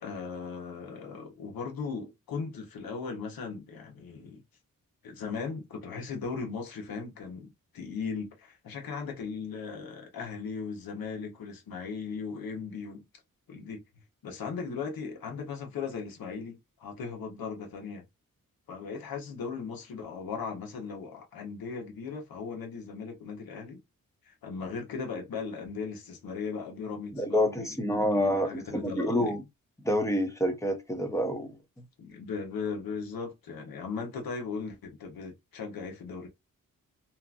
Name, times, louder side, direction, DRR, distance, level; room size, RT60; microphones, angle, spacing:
voice 1, 0.0-4.4 5.0-13.0 13.5-13.8 14.2-18.0 18.7-23.8 24.3-27.7 28.1-29.3 32.0-36.3, left 5 dB, 90° left, 1.0 m, -38 dB
voice 2, 27.1-29.4 29.8-31.6, equal, 10° left, 0.7 m, -28 dB
2.9 x 2.4 x 2.4 m
wide cardioid pair, 105°, 34 cm